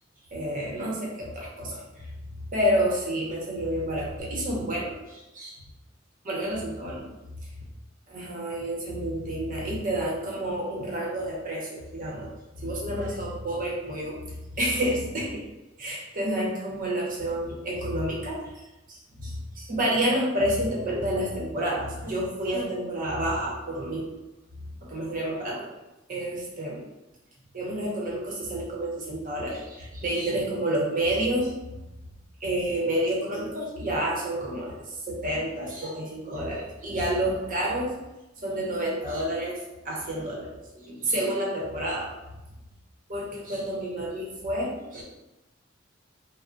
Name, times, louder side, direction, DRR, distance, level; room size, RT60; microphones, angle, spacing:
voice 1, 0.3-2.1 2.5-5.6 6.2-7.1 7.5-7.6 8.1-12.3 12.6-15.4 15.8-18.4 18.9-24.2 24.5-25.7 26.1-26.8 27.5-31.8 32.4-37.9 38.4-42.1 43.1-45.0, right 1 dB, 45° right, -3 dB, 0.8 m, -29 dB
2.3 x 2.0 x 3.8 m, 1.0 s
head